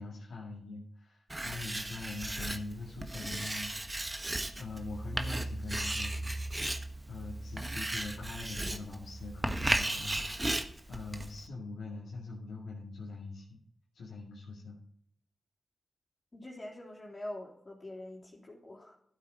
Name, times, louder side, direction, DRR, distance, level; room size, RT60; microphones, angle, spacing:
voice 1, 0.0-3.7 4.6-6.3 7.1-13.6 13.9-14.8, left 3 dB, 85° left, -6 dB, 2.2 m, -43 dB
Writing, 1.3-11.5, right 1 dB, 25° right, 1.2 m, -35 dB
voice 2, 16.3-18.9, left 1 dB, 40° left, -4 dB, 3.4 m, -44 dB
12.5 x 8.2 x 4.1 m, 0.70 s
cardioid pair, 45°, 0 cm